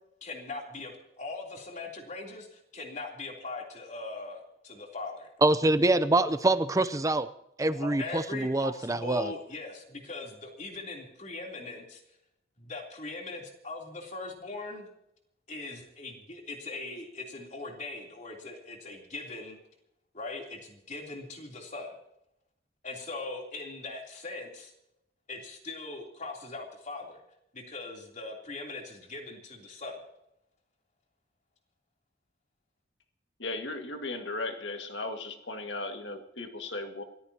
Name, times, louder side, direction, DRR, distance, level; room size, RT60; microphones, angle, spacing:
voice 1, 0.2-5.3 7.7-12.0 12.6-14.9 15.5-19.6 20.1-21.9 22.8-24.7 25.3-27.2 27.5-30.0, left 3 dB, 35° left, 3.3 m, -40 dB
voice 2, 5.4-7.3 7.6-9.3, right 2 dB, 15° right, 0.5 m, -25 dB
voice 3, 33.4-37.0, left 2 dB, 60° left, 2.0 m, -36 dB
28.0 x 14.5 x 2.9 m
head